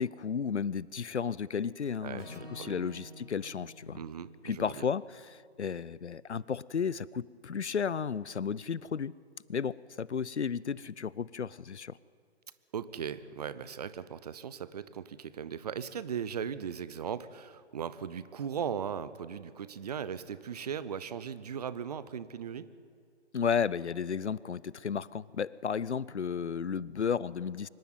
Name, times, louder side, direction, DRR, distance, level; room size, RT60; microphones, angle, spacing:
voice 1, 0.0-4.0 4.4-9.2 9.5-12.0 23.3-27.7, left 6 dB, 75° left, 22 dB, 0.6 m, -33 dB
voice 2, 2.0-2.7 3.9-4.8 12.7-22.7, right 7 dB, 35° right, 15 dB, 0.8 m, -38 dB
Acoustic guitar / Strum, 2.1-6.5, left 1 dB, 15° left, 4.1 m, -51 dB
24.5 x 12.0 x 9.3 m, 2.1 s
figure-of-eight pair, 135°, 34 cm